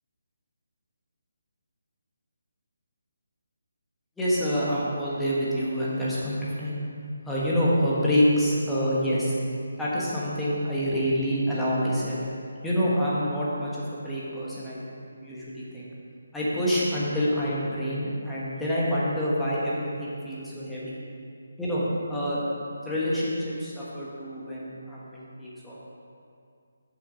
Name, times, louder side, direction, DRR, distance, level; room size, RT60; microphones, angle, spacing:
voice 1, 4.2-6.8 7.2-9.3 9.8-12.2 12.6-14.8 15.2-15.9 16.3-20.9 21.6-21.8 22.1-22.5 22.8-25.8, equal, 5° left, -9 dB, 1.2 m, -27 dB
7.2 x 6.9 x 5.0 m, 2.4 s
hypercardioid pair, 170°, 0 cm